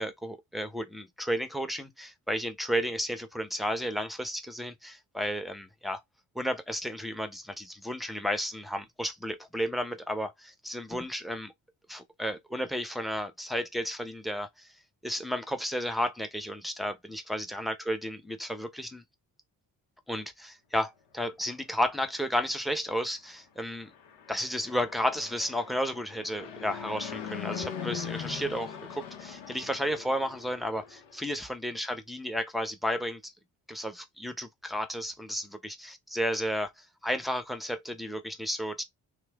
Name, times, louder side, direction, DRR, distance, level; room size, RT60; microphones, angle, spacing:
voice 1, 0.0-6.0 6.3-11.5 11.9-14.7 15.0-19.0 20.1-23.9 24.3-33.3 33.7-38.8, equal, ahead, 0.7 m, -33 dB
Fixed-wing aircraft airplane, 23.8-31.2, left 8 dB, 85° left, 0.8 m, -41 dB
3.0 x 2.2 x 3.4 m
supercardioid pair, 55°, 43 cm